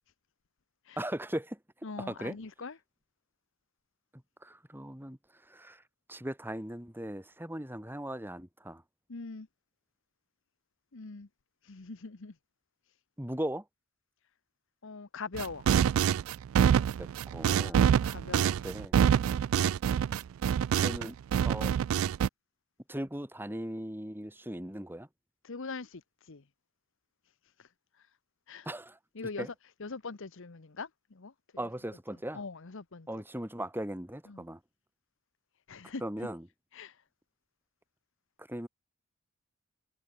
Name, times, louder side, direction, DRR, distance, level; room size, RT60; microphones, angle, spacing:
voice 1, 1.0-1.6 2.0-2.4 4.4-5.2 5.5-5.8 6.1-8.8 13.2-13.6 16.8-18.2 18.6-19.0 20.8-21.1 21.4-21.7 22.9-25.1 28.6-29.0 29.4-29.5 31.6-32.4 33.1-34.6 36.0-36.5 38.4-38.7, right 1 dB, 10° right, 3.3 m, -38 dB
voice 2, 1.8-2.8 9.1-9.5 10.9-11.3 11.6-12.3 14.8-15.7 17.6-18.6 20.8-21.0 25.4-26.4 27.6-27.7 28.5-28.7 29.1-29.5 29.8-31.3 32.3-33.1 34.3-34.4 35.7-36.0 36.7-37.0, left 4 dB, 60° left, 1.0 m, -42 dB
sound 1, 15.3-21.1 21.3-22.3, right 8 dB, 65° right, 0.3 m, -26 dB
head